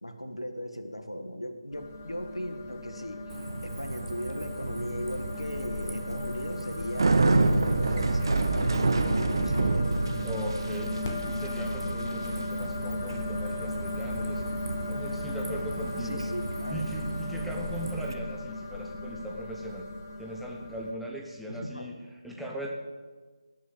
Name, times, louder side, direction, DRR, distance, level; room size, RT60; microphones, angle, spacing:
voice 1, 0.0-3.4 3.6-7.2 7.8-9.9 16.0-16.8 21.5-21.9, equal, 85° left, 7 dB, 1.8 m, -37 dB
sound 1, 1.7-20.9, left 2 dB, 30° left, 1.5 m, -36 dB
Bicycle, 3.3-18.1, right 3 dB, 55° right, 1.1 m, -30 dB
voice 2, 10.2-14.5 14.9-16.2 16.7-19.8 20.2-22.7, right 1 dB, ahead, -2 dB, 1.0 m, -39 dB
18.5 x 6.7 x 8.0 m, 1.4 s
figure-of-eight pair, 155°, 3 cm